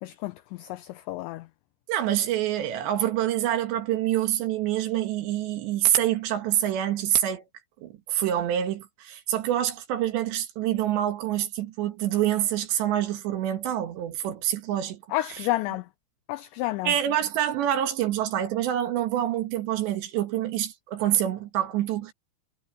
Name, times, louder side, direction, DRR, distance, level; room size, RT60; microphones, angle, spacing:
voice 1, 0.0-1.5 15.1-15.9 16.3-16.9, left 17 dB, 85° left, 2.6 m, -30 dB
voice 2, 1.9-7.4 7.8-15.0 16.8-22.1, right 11 dB, 65° right, 3.4 m, -26 dB
omnidirectional pair, 5.9 m